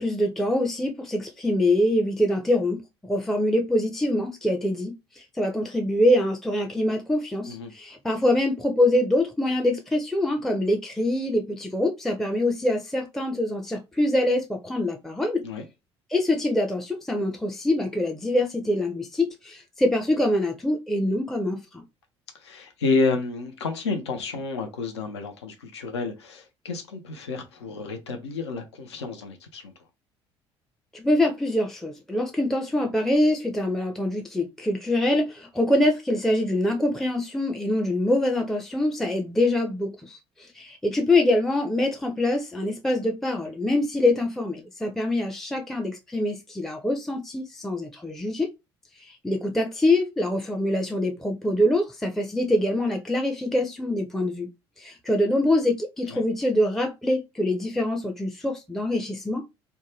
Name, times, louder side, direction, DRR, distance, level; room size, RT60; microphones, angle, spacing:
voice 1, 0.0-2.8 3.1-15.4 16.1-21.8 30.9-48.5 49.0-54.5 54.8-59.5, left 1 dB, 5° left, 0.4 m, -24 dB
voice 2, 22.4-29.7 56.1-56.2, left 3 dB, 75° left, 0.5 m, -30 dB
2.6 x 2.1 x 3.1 m
figure-of-eight pair, 55°, 14 cm